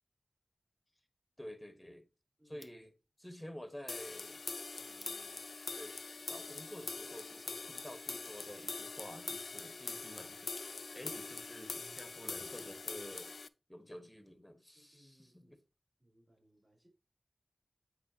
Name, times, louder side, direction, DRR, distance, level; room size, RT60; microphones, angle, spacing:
voice 1, 1.4-2.0 2.5-2.9 3.2-4.4 4.8-5.4 5.7-13.3 13.7-15.5, equal, 10° left, 1.4 m, -50 dB
sound 1, 2.4-11.2, left 2 dB, 30° left, 0.8 m, -67 dB
voice 2, 2.4-2.7 14.7-15.6 16.0-16.9, equal, 30° right, 3.9 m, -67 dB
sound 2, 3.9-13.5, left 4 dB, 75° left, 0.3 m, -43 dB
8.7 x 4.5 x 2.9 m
wide cardioid pair, 50°, 0 cm